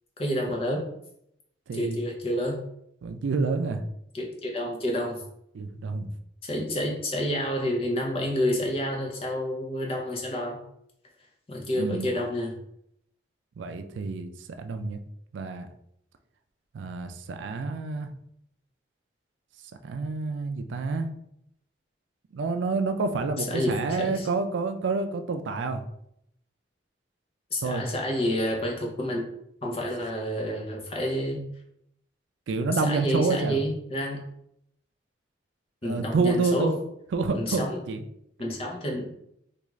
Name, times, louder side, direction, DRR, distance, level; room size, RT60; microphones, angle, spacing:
voice 1, 0.2-0.9 1.7-2.6 4.1-5.2 6.4-10.6 11.5-12.6 23.5-24.3 27.5-29.2 29.6-31.4 32.7-34.2 35.8-36.7 37.3-37.8 38.4-39.1, equal, 30° left, 0 dB, 0.6 m, -29 dB
voice 2, 1.7-2.0 3.0-3.8 5.5-6.1 11.7-12.1 13.6-15.0 15.3-15.7 16.7-18.1 19.8-21.1 22.3-25.8 27.6-27.8 32.5-33.6 35.8-36.8 37.1-38.1, right 3 dB, 85° right, 8 dB, 0.4 m, -28 dB
3.5 x 2.4 x 3.0 m, 0.75 s
head